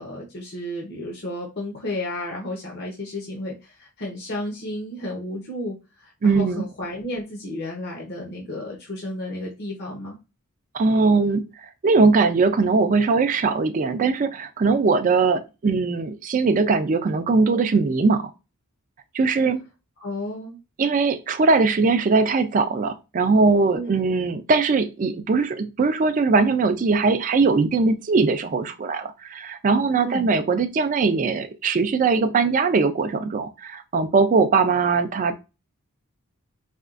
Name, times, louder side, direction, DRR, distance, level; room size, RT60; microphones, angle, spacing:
voice 1, 0.0-10.2 20.0-20.6 23.7-24.0 30.0-30.3, left 1 dB, 50° left, -2 dB, 0.8 m, -32 dB
voice 2, 6.2-6.6 10.7-11.5 11.8-18.3 19.1-19.6 20.8-35.3, right 4 dB, 35° right, 7 dB, 0.4 m, -20 dB
4.3 x 2.3 x 2.4 m, 0.27 s
head